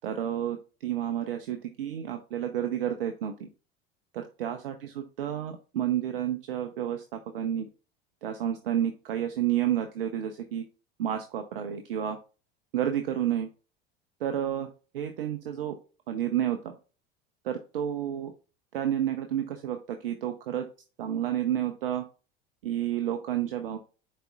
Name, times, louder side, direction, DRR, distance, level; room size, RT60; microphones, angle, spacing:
voice 1, 0.0-3.5 4.1-7.7 8.2-10.6 11.0-12.2 12.7-13.5 14.2-14.7 14.9-15.8 16.1-16.8 17.4-18.3 18.7-20.6 21.0-22.0 22.6-23.8, right 10 dB, 75° right, 7 dB, 0.7 m, -30 dB
10.5 x 4.1 x 2.3 m, 0.34 s
figure-of-eight pair, 75°, 29 cm